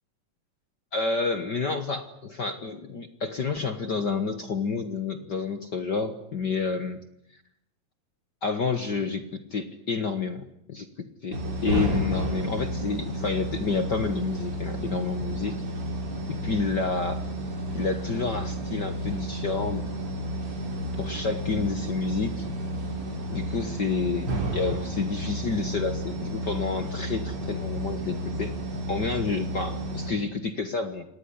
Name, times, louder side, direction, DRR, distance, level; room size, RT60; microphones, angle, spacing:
voice 1, 0.9-7.0 8.4-15.6 16.3-17.2 17.7-19.9 21.0-22.5 23.3-24.3 24.5-28.5 28.9-31.1, left 4 dB, 50° left, 9 dB, 1.3 m, -29 dB
sound 1, 11.3-30.1, right 1 dB, 40° right, 4.8 m, -31 dB
26.0 x 19.5 x 9.8 m, 0.76 s
omnidirectional pair, 3.8 m